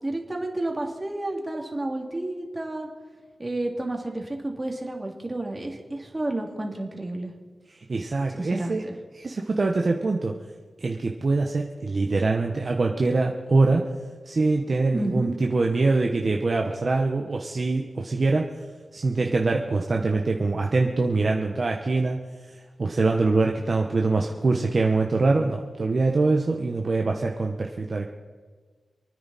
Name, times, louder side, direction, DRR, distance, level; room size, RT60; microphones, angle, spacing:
voice 1, 0.0-2.9 3.4-7.3 8.4-8.9 14.9-15.3, right 1 dB, 25° right, 1 dB, 2.7 m, -30 dB
voice 2, 7.7-8.8 9.1-10.3 10.8-13.8 14.3-18.5 18.9-22.2 22.8-28.1, right 3 dB, 45° right, 2 dB, 1.1 m, -24 dB
28.0 x 9.8 x 4.2 m, 1.4 s
wide cardioid pair, 85°, 0 cm